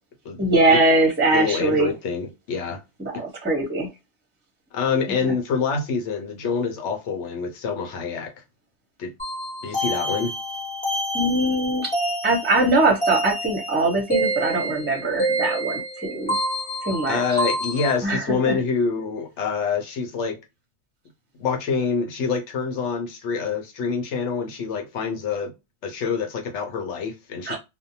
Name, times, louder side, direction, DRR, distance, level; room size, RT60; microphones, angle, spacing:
voice 1, 0.4-1.9 3.0-3.9 11.1-11.9 12.2-16.3 16.9-17.4 18.0-18.6 27.5-27.6, right 2 dB, 10° right, 0.6 m, -22 dB
voice 2, 1.3-2.8 3.1-3.2 4.7-8.3 9.0-9.1 9.6-10.3 17.1-20.4 21.4-25.5 25.8-27.6, left 5 dB, 90° left, 1.0 m, -26 dB
sound 1, 9.2-17.9, right 1 dB, 5° left, 1.0 m, -28 dB
2.6 x 2.1 x 2.7 m
omnidirectional pair, 1.2 m